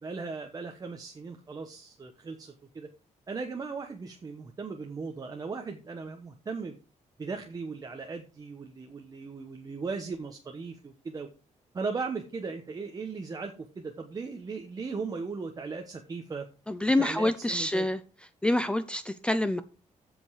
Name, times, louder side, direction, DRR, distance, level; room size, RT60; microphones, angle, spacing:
voice 1, 0.0-2.9 3.3-6.7 7.2-11.3 11.7-16.5 17.0-17.9, right 4 dB, 30° right, 4 dB, 1.1 m, -37 dB
voice 2, 16.7-18.0 18.4-19.6, left 1 dB, 10° left, 12 dB, 0.5 m, -26 dB
15.0 x 5.4 x 4.8 m, 0.35 s
wide cardioid pair, 165°, 13 cm